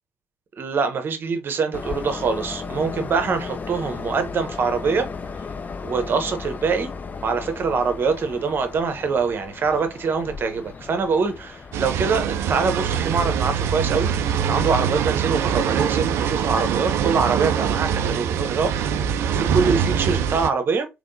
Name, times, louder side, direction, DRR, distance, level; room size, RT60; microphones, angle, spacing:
voice 1, 0.6-5.1 5.8-6.9 7.2-14.1 14.5-20.9, right 5 dB, 45° right, 0.9 m, -24 dB
Train, 1.7-14.4, left 4 dB, 35° left, 0.5 m, -36 dB
sound 1, 11.7-20.5, right 8 dB, 60° right, 0.4 m, -23 dB
3.6 x 3.0 x 2.6 m
figure-of-eight pair, 45°, 5 cm